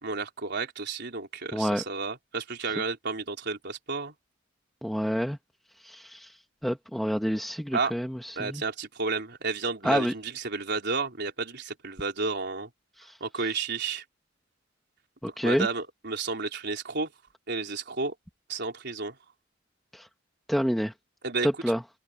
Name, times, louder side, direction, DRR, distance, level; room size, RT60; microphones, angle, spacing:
voice 1, 0.0-4.1 7.7-7.9 8.4-12.7 13.2-14.0 15.4-17.1 17.5-18.1 18.5-19.2 21.2-21.5, right 4 dB, 60° right, 4.1 m, -31 dB
voice 2, 1.5-1.8 4.8-5.4 5.8-8.6 9.8-10.1 13.0-13.2 15.2-15.7 19.9-20.1 20.5-20.9 21.4-21.8, equal, ahead, 1.7 m, -28 dB
open air
head